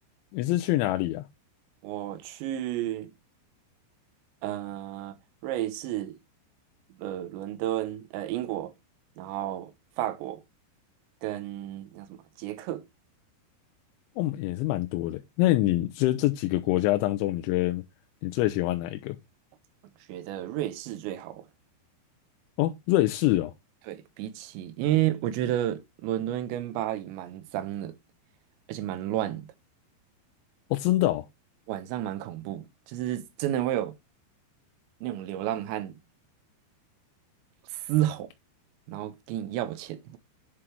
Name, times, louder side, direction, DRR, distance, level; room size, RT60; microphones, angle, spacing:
voice 1, 0.3-1.3 14.2-17.8 18.2-19.2 22.6-23.5 30.7-31.2, left 16 dB, 90° left, 3.0 m, -25 dB
voice 2, 1.8-3.1 4.4-5.2 5.4-6.1 7.0-8.7 9.2-9.7 10.0-10.4 11.2-12.8 20.1-21.5 23.9-28.0 28.7-29.5 31.7-33.9 35.0-35.9 37.7-38.3 38.9-40.2, right 13 dB, 80° right, 3.0 m, -31 dB
10.0 x 3.8 x 4.5 m
omnidirectional pair, 5.3 m